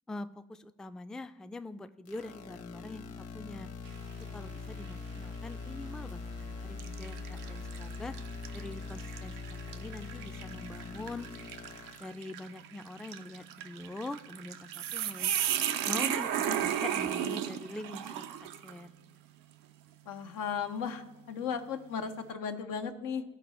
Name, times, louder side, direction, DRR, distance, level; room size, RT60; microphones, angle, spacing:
voice 1, 0.1-3.7 4.3-8.1 8.5-9.4 9.7-11.3 12.0-15.3 15.8-16.3 16.6-18.9, left 2 dB, ahead, 11 dB, 0.3 m, -43 dB
sound 1, 2.1-12.0, left 4 dB, 50° left, 1.0 m, -42 dB
sound 2, 3.9-4.3 4.8-5.0 5.9-6.2 6.8-18.8, right 10 dB, 85° right, 0.5 m, -35 dB
voice 2, 16.4-17.0 20.1-23.2, left 6 dB, 85° left, 6 dB, 0.7 m, -36 dB
13.5 x 4.6 x 3.0 m, 0.98 s
hypercardioid pair, 45°, 32 cm